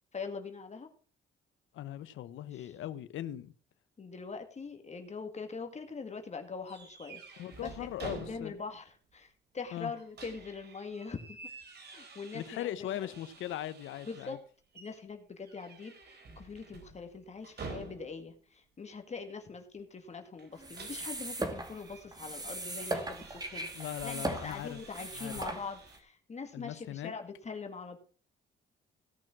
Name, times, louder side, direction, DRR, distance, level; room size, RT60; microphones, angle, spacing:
voice 1, 0.1-0.9 2.5-2.7 4.0-11.4 11.9-13.1 14.1-14.4 14.7-28.0, left 4 dB, 35° left, 2.0 m, -43 dB
voice 2, 1.7-3.5 7.4-8.5 9.7-9.9 12.3-14.4 23.7-24.8 25.2-25.4 26.5-27.1, left 12 dB, 80° left, 0.9 m, -39 dB
sound 1, 6.7-8.8 9.1-9.2 9.8-14.4 14.7-15.0 15.4-18.3 20.4-26.0, right 3 dB, 55° right, 3.7 m, -50 dB
sound 2, 20.6-26.0, right 2 dB, 20° right, 2.3 m, -39 dB
17.0 x 6.1 x 6.1 m
cardioid pair, 90°, 20 cm